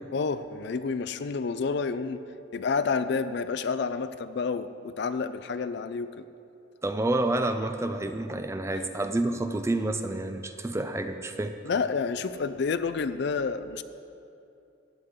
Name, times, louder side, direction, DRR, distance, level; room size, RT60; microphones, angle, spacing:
voice 1, 0.1-2.2 2.5-6.3 11.6-13.8, left 5 dB, 55° left, 12 dB, 0.4 m, -29 dB
voice 2, 6.8-11.6, right 2 dB, 15° right, 8 dB, 0.4 m, -29 dB
14.5 x 9.5 x 3.7 m, 2.7 s
head